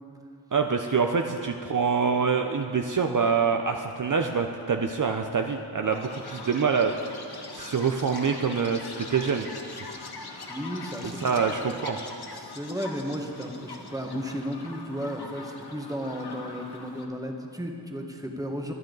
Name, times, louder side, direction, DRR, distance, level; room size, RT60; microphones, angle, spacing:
voice 1, 0.5-6.9 7.5-9.5 11.0-12.0, right 5 dB, 50° right, 5 dB, 0.7 m, -25 dB
Chirp tweet, 5.9-17.0, left 3 dB, 65° left, 1.4 m, -42 dB
voice 2, 10.5-11.7 12.3-18.7, equal, 10° right, 2 dB, 1.4 m, -34 dB
24.0 x 9.0 x 4.0 m, 2.5 s
wide cardioid pair, 85°, 41 cm